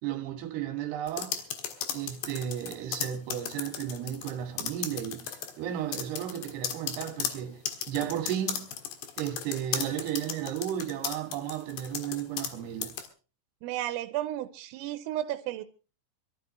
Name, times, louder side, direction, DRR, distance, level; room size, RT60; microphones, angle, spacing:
voice 1, 0.0-1.4 1.9-8.7 9.2-13.0, right 11 dB, 65° right, 3.5 m, -34 dB
sound 1, 1.1-4.3 4.6-5.5 5.9-12.5 12.8-13.1, left 9 dB, 65° left, 3.3 m, -35 dB
voice 2, 13.6-15.6, right 13 dB, 85° right, 3.5 m, -33 dB
24.5 x 13.5 x 3.1 m
omnidirectional pair, 5.8 m